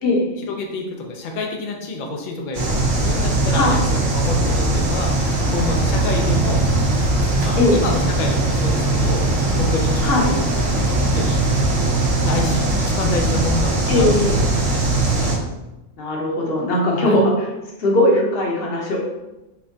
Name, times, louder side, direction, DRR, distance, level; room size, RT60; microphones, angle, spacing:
voice 1, 0.4-2.7 3.0-3.8 4.1-5.2 5.5-6.7 7.4-9.3 9.6-11.4 12.3-14.3 14.5-15.3 16.9-17.2, left 2 dB, 65° left, 2 dB, 0.4 m, -28 dB
sound 1, 2.5-15.4, right 2 dB, 70° right, 1.3 m, -20 dB
voice 2, 13.9-14.4 16.0-17.3 17.8-19.0, left 1 dB, 50° left, -1 dB, 0.9 m, -19 dB
4.3 x 3.3 x 2.6 m, 1.0 s
omnidirectional pair, 1.4 m